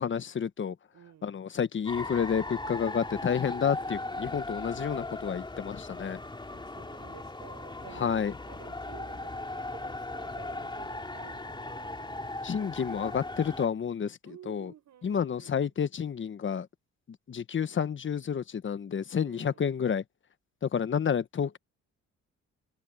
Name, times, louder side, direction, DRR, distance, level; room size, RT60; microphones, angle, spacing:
voice 1, 0.0-0.8 1.2-6.2 8.0-8.3 12.4-14.2 14.5-14.7 15.0-16.7 17.3-20.0 20.6-21.6, left 7 dB, 40° left, 1.1 m, -30 dB
voice 2, 0.9-1.5 6.5-12.4 14.2-15.7 19.2-19.7, right 10 dB, 65° right, 6.2 m, -53 dB
sound 1, 1.9-13.7, left 2 dB, 15° left, 2.7 m, -38 dB
cardioid pair, 90°, 30 cm